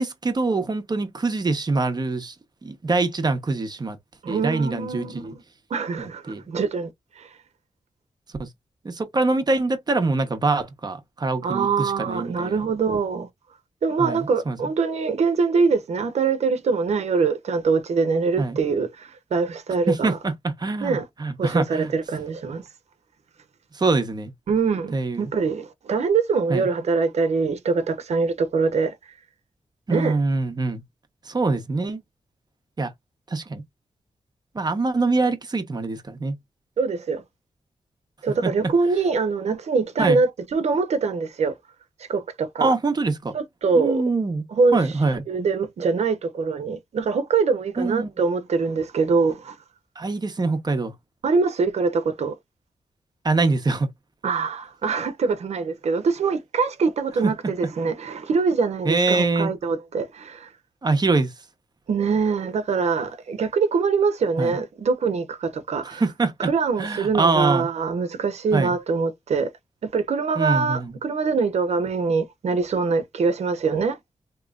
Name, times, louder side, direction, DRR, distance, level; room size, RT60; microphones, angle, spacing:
voice 1, 0.0-2.3 2.6-4.0 4.3-5.3 6.0-6.4 8.4-8.5 8.8-12.6 14.0-14.6 18.4-18.6 19.9-21.9 23.7-24.3 24.9-25.3 26.5-26.7 29.9-30.8 31.2-32.0 32.8-32.9 33.3-33.6 34.5-36.4 38.4-38.5 40.0-40.2 42.6-43.3 43.7-44.4 44.7-45.2 47.8-48.1 50.0-50.9 53.2-53.9 57.2-57.3 58.8-59.5 60.8-61.3 64.4-64.6 65.8-66.5 66.8-67.7 68.5-68.7 70.4-71.0, right 3 dB, 40° right, 0.9 m, -24 dB
voice 2, 4.2-5.4 5.7-6.9 7.2-7.3 11.4-13.3 13.8-20.2 20.8-21.0 21.4-22.6 24.5-28.9 29.9-30.2 36.8-37.2 38.2-41.5 42.1-42.7 43.3-44.0 44.5-44.8 45.3-49.6 51.2-52.3 54.2-60.5 61.9-66.0 66.4-69.5 69.8-74.0, right 4 dB, 75° right, 0.9 m, -23 dB
3.5 x 3.0 x 2.4 m
cardioid pair, 80°, 11 cm